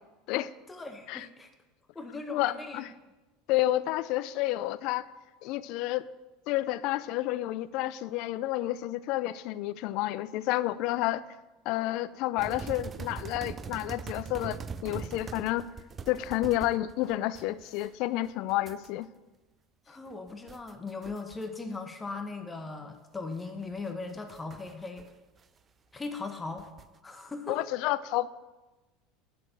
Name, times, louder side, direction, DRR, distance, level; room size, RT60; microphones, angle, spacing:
voice 1, 0.7-1.5 1.9-2.8 19.9-25.1 25.9-26.7 27.0-27.6, left 3 dB, 15° left, 6 dB, 0.9 m, -39 dB
voice 2, 2.3-2.9 3.5-5.1 5.4-6.0 6.5-11.2 11.7-15.7 16.1-19.1 27.5-28.3, left 15 dB, 65° left, 17 dB, 0.4 m, -30 dB
sound 1, 12.4-17.9 18.2-18.9 20.1-21.4 21.8-21.9 23.6-25.1 25.4-25.5 26.6-27.0, right 6 dB, 30° right, 0.4 m, -42 dB
8.3 x 6.6 x 6.6 m, 1.1 s
supercardioid pair, 105°, 0 cm